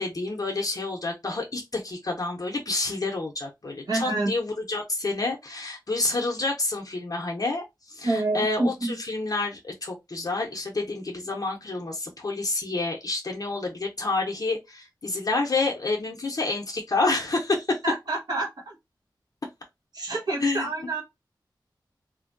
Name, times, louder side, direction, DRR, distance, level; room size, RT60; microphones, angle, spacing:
voice 1, 0.0-17.8 20.4-20.7, left 3 dB, 50° left, 0.6 m, -28 dB
voice 2, 3.9-4.3 8.0-8.9 17.8-18.7 19.9-21.0, right 2 dB, 60° right, 0.9 m, -27 dB
2.8 x 2.5 x 2.5 m
wide cardioid pair, 80°, 8 cm